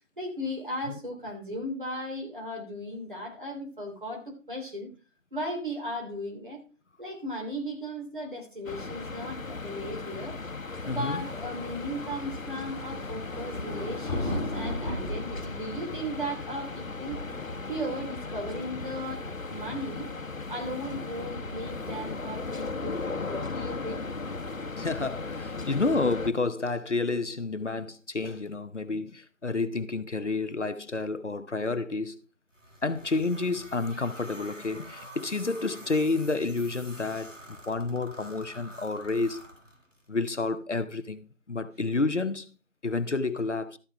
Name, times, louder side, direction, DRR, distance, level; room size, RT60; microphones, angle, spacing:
voice 1, 0.2-4.9 5.3-6.6 7.0-10.4 10.8-17.2 17.6-20.1 20.5-24.0, equal, 40° right, 3.1 m, -36 dB
sound 1, 8.7-26.3, left 3 dB, 80° left, 1.3 m, -37 dB
sound 2, 10.7-25.9, left 1 dB, 15° right, 3.8 m, -40 dB
voice 2, 10.9-11.2 24.8-32.2 32.8-39.4 40.1-42.5 42.8-43.8, left 3 dB, 60° left, 0.9 m, -30 dB
sound 3, 32.5-40.1, right 1 dB, 70° right, 4.1 m, -47 dB
13.0 x 5.5 x 4.6 m
figure-of-eight pair, 180°, 39 cm